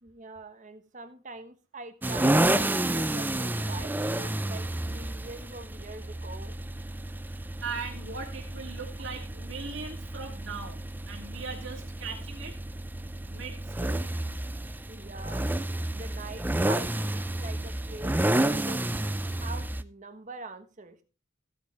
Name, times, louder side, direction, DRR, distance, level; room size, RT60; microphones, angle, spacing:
voice 1, 0.0-6.6 14.9-15.5 15.9-21.0, right 2 dB, 40° right, 9 dB, 1.4 m, -44 dB
sound 1, 2.0-19.8, right 1 dB, 10° right, 0.5 m, -30 dB
voice 2, 7.3-12.6 13.2-14.1, right 5 dB, 65° right, 1 dB, 2.6 m, -40 dB
15.0 x 8.1 x 3.4 m, 0.34 s
head